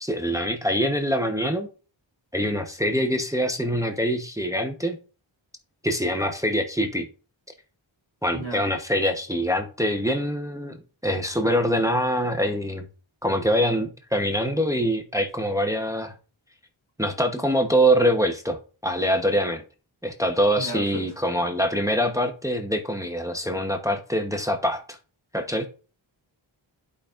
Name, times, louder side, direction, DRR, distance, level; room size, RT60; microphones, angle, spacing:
voice 1, 0.0-1.7 2.3-5.0 5.8-7.1 8.2-10.8 11.0-12.9 13.2-16.1 17.0-19.6 20.0-25.0 25.3-25.7, equal, 5° right, 0.9 m, -24 dB
voice 2, 8.3-8.7 20.6-21.0, equal, 75° left, 2.7 m, -33 dB
11.0 x 5.2 x 2.5 m
wide cardioid pair, 60°, 48 cm